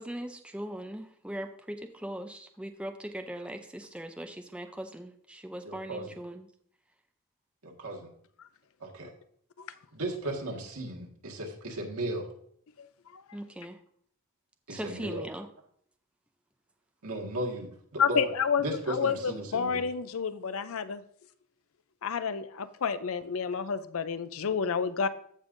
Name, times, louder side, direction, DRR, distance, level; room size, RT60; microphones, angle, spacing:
voice 1, 0.0-6.5 13.3-13.8 14.7-15.5, right 1 dB, 5° right, 6 dB, 0.4 m, -40 dB
voice 2, 5.7-6.1 7.6-8.1 8.8-9.1 9.9-12.3 14.7-15.2 17.0-18.3 18.6-19.9, right 1 dB, 85° right, 0 dB, 1.7 m, -35 dB
voice 3, 18.0-21.0 22.0-25.1, left 6 dB, 70° left, 13 dB, 0.5 m, -30 dB
14.5 x 5.3 x 2.6 m, 0.65 s
head